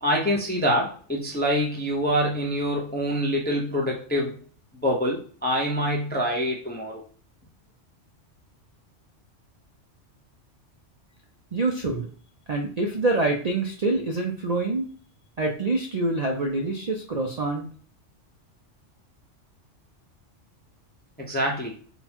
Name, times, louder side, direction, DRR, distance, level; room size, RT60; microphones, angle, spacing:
voice 1, 0.0-4.4 4.7-7.0 21.2-21.7, equal, 10° left, -1 dB, 0.5 m, -25 dB
voice 2, 11.5-12.1 12.5-14.9 15.4-17.7, right 2 dB, 55° right, 2 dB, 0.4 m, -26 dB
3.9 x 2.3 x 4.2 m, 0.42 s
omnidirectional pair, 1.3 m